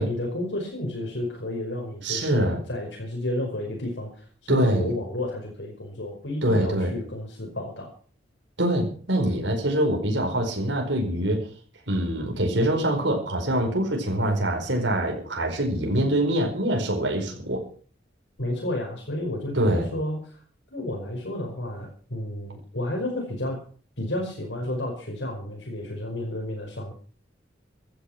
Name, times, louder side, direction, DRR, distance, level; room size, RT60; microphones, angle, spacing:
voice 1, 0.0-7.9 18.4-20.4 20.7-23.6 24.0-26.9, left 1 dB, 80° left, 0 dB, 5.4 m, -31 dB
voice 2, 2.0-2.6 4.5-4.9 6.4-6.9 8.6-11.5 11.9-17.6 19.5-19.9, right 1 dB, 75° right, 1 dB, 4.9 m, -24 dB
15.5 x 12.0 x 5.9 m, 0.43 s
head